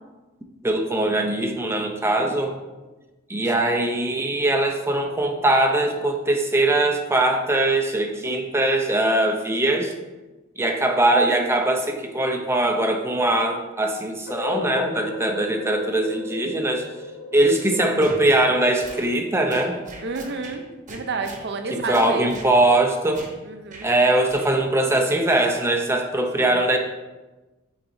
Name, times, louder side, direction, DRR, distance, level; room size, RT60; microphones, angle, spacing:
voice 1, 0.6-2.5 3.3-9.9 10.6-16.8 17.3-19.8 21.7-23.3 23.8-26.8, right 1 dB, 10° right, 3 dB, 0.6 m, -21 dB
sound 1, 14.3-20.1, left 3 dB, 55° left, 0.8 m, -36 dB
sound 2, 18.0-18.2 18.8-19.1 19.5-20.6 20.9-21.5 21.9-22.5 23.1-23.4 23.7-23.9 24.3-24.5, right 2 dB, 40° right, 0.9 m, -40 dB
voice 2, 20.0-20.6 20.9-22.6 23.4-23.9 26.4-26.5, right 4 dB, 55° right, 6 dB, 0.6 m, -31 dB
8.8 x 4.0 x 2.7 m, 1.1 s
head